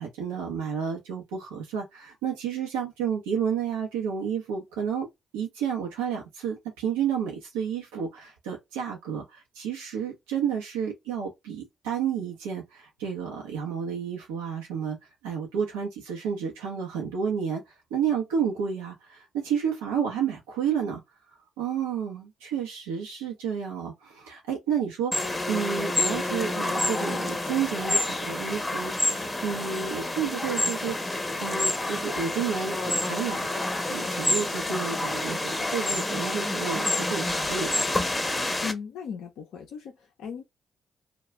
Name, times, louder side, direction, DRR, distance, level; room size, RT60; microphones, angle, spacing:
voice 1, 0.0-5.1 5.3-15.0 15.2-21.0 21.3-33.6 33.9-37.9, right 7 dB, 80° right, 0.6 m, -31 dB
sound 1, 25.1-38.7, left 2 dB, 20° left, 0.7 m, -28 dB
voice 2, 38.6-40.4, left 6 dB, 70° left, 0.5 m, -37 dB
2.3 x 2.2 x 2.9 m
hypercardioid pair, 40°, 0 cm